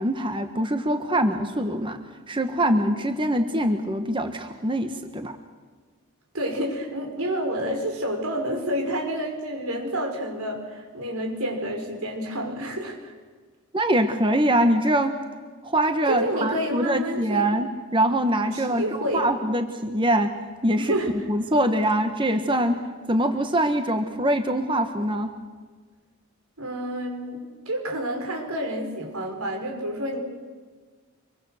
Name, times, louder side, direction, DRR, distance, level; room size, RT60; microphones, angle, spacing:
voice 1, 0.0-2.0 2.3-5.3 13.7-15.1 15.6-20.3 20.6-20.9 21.3-22.7 23.1-25.3, right 1 dB, 25° right, 7 dB, 1.3 m, -23 dB
voice 2, 6.3-13.1 16.1-17.5 18.5-19.3 20.8-21.1 26.6-30.2, equal, 90° right, 4 dB, 5.2 m, -29 dB
26.0 x 23.5 x 6.6 m, 1.5 s
head